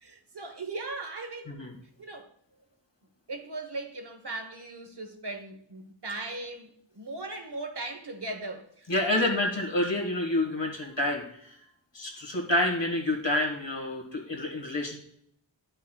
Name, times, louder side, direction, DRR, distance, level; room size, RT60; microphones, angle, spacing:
voice 1, 0.0-1.5 2.0-2.3 3.3-9.4, right 2 dB, 60° right, 1.1 m, -38 dB
voice 2, 8.9-11.6 11.9-15.0, left 1 dB, 70° left, 1.7 m, -28 dB
11.0 x 5.5 x 2.3 m
wide cardioid pair, 55°, 45 cm